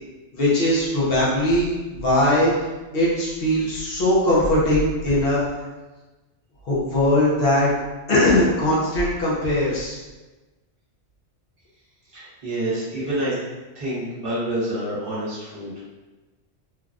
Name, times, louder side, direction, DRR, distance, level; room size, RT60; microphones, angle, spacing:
voice 1, 0.3-2.5 2.9-5.4 6.7-7.7 8.1-9.9, left 1 dB, 55° left, -6 dB, 0.9 m, -20 dB
voice 2, 12.1-13.3 13.7-15.9, right 1 dB, 50° right, -9 dB, 1.1 m, -28 dB
3.2 x 2.3 x 2.4 m, 1.2 s
omnidirectional pair, 1.2 m